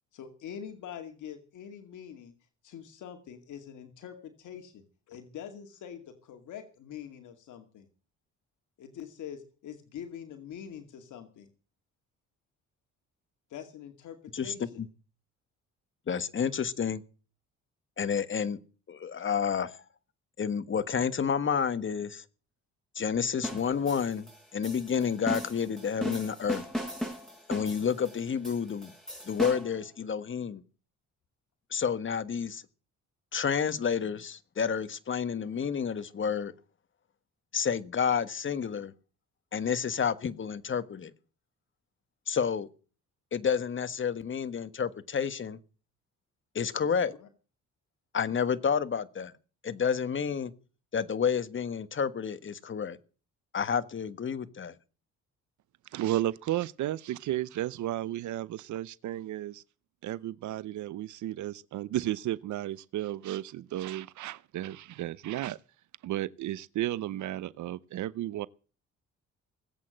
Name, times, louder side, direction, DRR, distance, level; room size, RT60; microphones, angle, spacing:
voice 1, 0.1-2.3 2.6-7.9 8.8-11.5 13.5-14.8 46.8-47.3, left 8 dB, 80° left, 2.3 m, -44 dB
voice 2, 16.1-17.0 18.0-18.6 18.9-19.7 20.4-22.2 22.9-24.3 24.5-26.6 27.5-28.9 29.3-30.6 31.7-32.6 33.3-36.5 37.5-38.9 39.5-41.1 42.3-42.7 43.3-45.6 46.5-47.1 48.1-49.3 49.6-50.5 50.9-53.0 53.5-54.7, left 7 dB, 40° left, 1.5 m, -30 dB
sound 1, 23.4-29.8, equal, ahead, 6.6 m, -37 dB
voice 3, 55.9-59.6 60.0-65.6 66.0-68.5, right 13 dB, 70° right, 0.7 m, -33 dB
19.5 x 8.5 x 7.8 m
cardioid pair, 90°, 30 cm